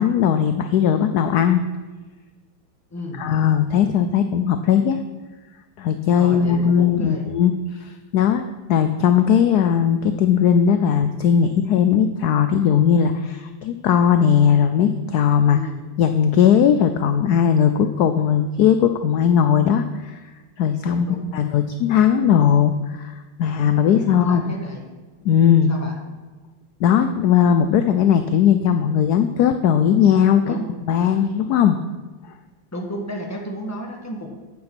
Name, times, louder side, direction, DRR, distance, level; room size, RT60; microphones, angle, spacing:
voice 1, 0.0-1.6 3.2-5.0 5.8-7.5 8.1-8.4 8.7-15.6 16.0-20.2 20.6-23.1 23.4-24.4 25.2-25.7 26.8-30.6 30.9-31.8, left 8 dB, 75° left, 9 dB, 0.9 m, -18 dB
voice 2, 2.9-3.2 6.1-7.3 15.5-15.8 20.8-21.3 23.9-24.9 25.7-25.9 30.4-30.7 32.7-34.4, equal, 10° left, 1 dB, 1.2 m, -33 dB
9.5 x 8.6 x 6.0 m, 1.3 s
omnidirectional pair, 2.2 m